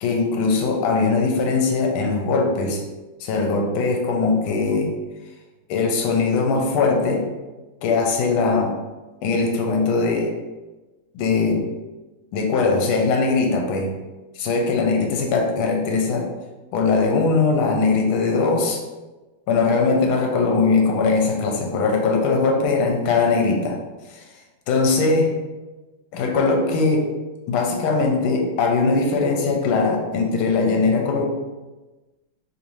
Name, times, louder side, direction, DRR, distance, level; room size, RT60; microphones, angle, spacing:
voice 1, 0.0-2.8 3.2-4.9 5.7-7.2 7.8-8.7 9.2-10.3 11.1-11.6 12.3-13.9 14.4-16.3 16.7-18.8 19.5-23.8 24.1-24.2 24.7-25.3 26.1-27.1 27.5-31.2, left 4 dB, 80° left, 1 dB, 1.4 m, -20 dB
3.5 x 3.0 x 2.6 m, 1.1 s
omnidirectional pair, 2.3 m